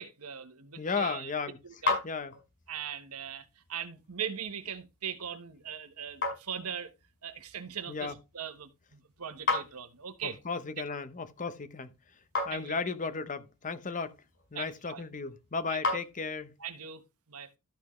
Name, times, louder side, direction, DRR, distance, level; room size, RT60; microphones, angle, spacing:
voice 1, 0.0-1.3 1.6-2.0 2.7-6.9 7.2-10.4 12.5-12.7 14.5-15.0 15.7-15.8 16.6-17.0 17.3-17.5, right 8 dB, 80° right, 1.1 m, -40 dB
voice 2, 0.8-1.6 2.0-2.3 7.9-8.1 10.2-11.9 12.4-14.2 14.5-16.5, left 4 dB, 35° left, 0.8 m, -35 dB
sound 1, 0.9-16.7, left 3 dB, 55° left, 5.2 m, -39 dB
13.0 x 5.8 x 3.1 m
head